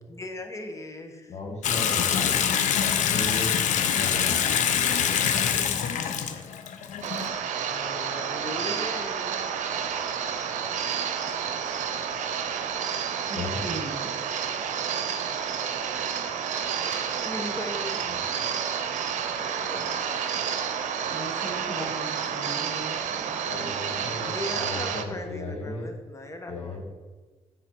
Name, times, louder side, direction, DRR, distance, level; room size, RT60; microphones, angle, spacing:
voice 1, 0.1-1.3 5.1-5.8 7.1-9.5 16.8-18.0 18.6-20.3 20.7-21.1 24.3-26.8, left 1 dB, 25° left, 4 dB, 1.1 m, -39 dB
voice 2, 1.3-2.4 2.8-5.6 13.3-13.6 16.8-16.9 18.0-18.2 23.4-25.9 26.5-26.8, left 3 dB, 65° left, 1 dB, 1.5 m, -36 dB
Water tap faucet / Sink (filling or washing) / Bathtub (filling or washing), 1.6-7.3, left 8 dB, 90° left, 0.6 m, -25 dB
sound 1, 7.0-25.0, right 7 dB, 85° right, 0.6 m, -30 dB
voice 3, 10.4-10.8 11.3-11.5 12.9-14.6 16.1-16.3 21.1-24.3, right 1 dB, 35° right, -7 dB, 2.5 m, -40 dB
10.0 x 3.9 x 4.5 m, 1.4 s
cardioid pair, 105°, 12 cm